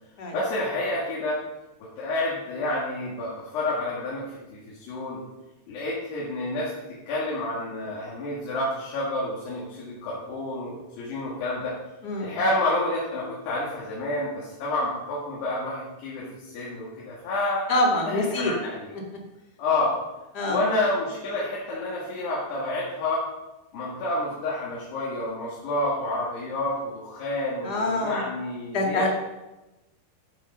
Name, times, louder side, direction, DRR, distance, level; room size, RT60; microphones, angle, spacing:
voice 1, 0.3-1.4 2.0-5.2 5.7-6.7 7.1-11.7 12.2-17.7 18.1-18.9 19.6-19.9 20.4-23.2 23.7-29.1, left 2 dB, 90° left, -7 dB, 4.3 m, -29 dB
voice 2, 12.0-12.4 17.7-18.5 20.3-20.6 27.6-28.2 28.7-29.1, left 2 dB, 35° left, 0 dB, 1.8 m, -25 dB
13.5 x 6.9 x 5.5 m, 1.0 s
omnidirectional pair, 4.6 m